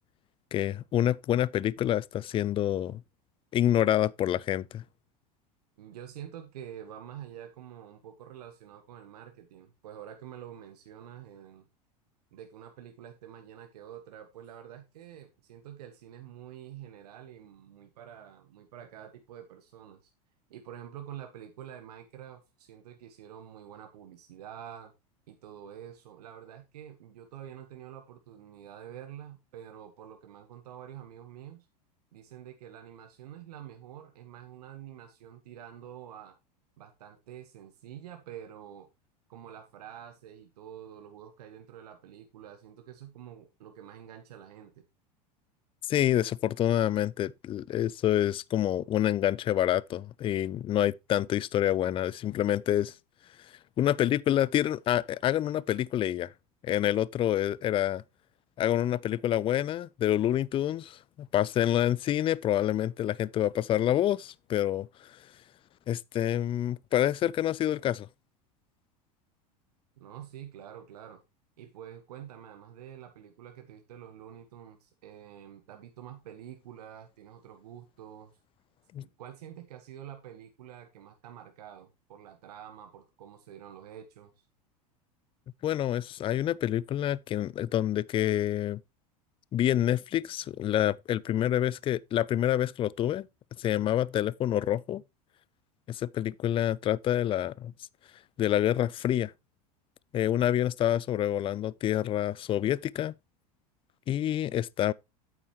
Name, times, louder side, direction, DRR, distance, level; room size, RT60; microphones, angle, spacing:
voice 1, 0.5-3.0 3.5-4.8 45.9-52.9 53.8-56.3 56.6-58.0 58.6-64.9 65.9-68.1 78.9-79.0 85.6-88.8 89.5-93.3 93.6-95.0 95.9-97.7 98.4-99.3 100.1-103.1 104.1-104.9, left 12 dB, 25° left, 0.4 m, -27 dB
voice 2, 5.8-11.7 12.3-20.1 20.5-24.9 25.3-31.7 32.1-36.4 36.8-38.9 39.3-44.8 70.0-71.2 71.6-78.3 79.0-84.4, right 10 dB, 75° right, 1.3 m, -47 dB
8.8 x 8.5 x 3.0 m
hypercardioid pair, 90°, 20 cm